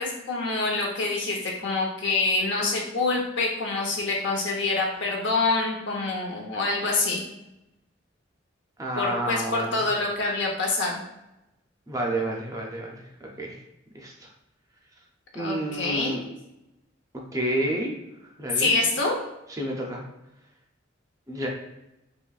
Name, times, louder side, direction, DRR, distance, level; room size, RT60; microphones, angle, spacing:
voice 1, 0.0-7.2 9.0-11.0 15.4-16.2 18.6-19.2, left 3 dB, 70° left, -1 dB, 0.8 m, -26 dB
voice 2, 8.8-9.8 11.9-12.9 13.2-13.6 13.9-14.3 15.3-16.2 17.1-17.9 18.4-18.7 19.5-20.0 21.3-21.5, right 1 dB, 20° right, 0 dB, 0.5 m, -30 dB
3.9 x 3.0 x 2.4 m, 0.92 s
head